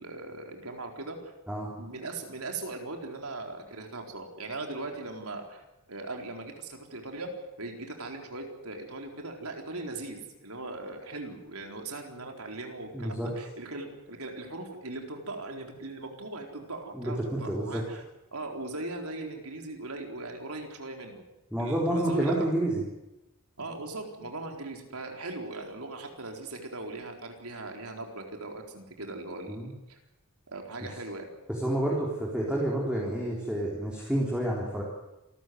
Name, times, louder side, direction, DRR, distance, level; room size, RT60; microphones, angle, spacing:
voice 1, 0.0-1.3 1.8-5.6 5.9-7.3 7.6-18.0 18.3-21.2 21.6-22.5 23.6-30.0 30.5-31.3, right 2 dB, 85° right, 2 dB, 4.3 m, -39 dB
voice 2, 12.9-13.3 16.9-17.8 21.5-22.8 29.5-29.7 31.6-34.8, right 1 dB, 5° right, -3 dB, 4.1 m, -29 dB
27.5 x 14.0 x 9.5 m, 0.95 s
head